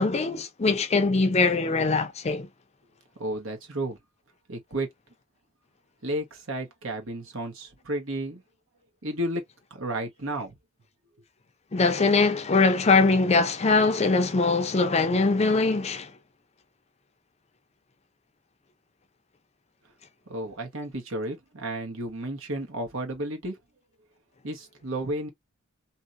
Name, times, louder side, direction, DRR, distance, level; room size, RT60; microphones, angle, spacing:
voice 1, 0.0-2.5 11.7-16.1, left 3 dB, 30° left, 0.5 m, -22 dB
voice 2, 3.2-4.0 4.5-4.9 6.0-8.4 9.0-9.4 9.7-10.6 20.3-23.6 24.4-25.3, right 1 dB, 75° right, 1.2 m, -32 dB
2.8 x 2.7 x 2.4 m
head